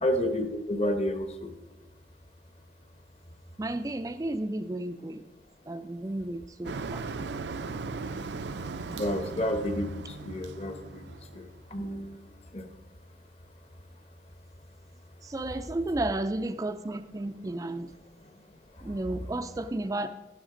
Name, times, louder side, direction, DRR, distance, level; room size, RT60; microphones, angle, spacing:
voice 1, 0.0-1.5 8.9-9.9 10.2-11.0 11.3-11.4 11.7-12.2 12.5-12.6, left 1 dB, 35° left, 7 dB, 0.9 m, -30 dB
voice 2, 3.6-5.2 5.7-7.1 15.2-17.9 18.8-20.1, right 2 dB, 20° right, 8 dB, 0.3 m, -33 dB
Motor vehicle (road), 6.6-11.6, right 4 dB, 80° right, 0.5 m, -38 dB
12.0 x 11.5 x 3.8 m, 1.1 s
head